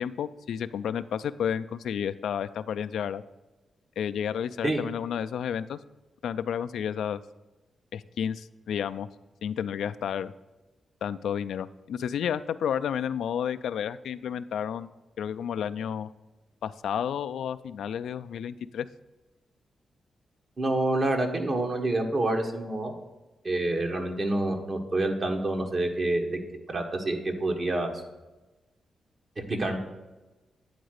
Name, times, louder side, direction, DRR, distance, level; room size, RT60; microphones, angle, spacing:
voice 1, 0.0-3.2 4.0-5.8 6.2-7.2 7.9-9.1 9.4-10.3 11.0-14.9 15.2-16.1 16.6-18.9, left 8 dB, 85° left, 13 dB, 0.3 m, -31 dB
voice 2, 20.6-22.9 23.4-26.3 26.7-27.9 29.4-29.8, right 2 dB, 45° right, 3 dB, 1.5 m, -27 dB
9.4 x 3.9 x 6.5 m, 1.1 s
cardioid pair, 65°, 0 cm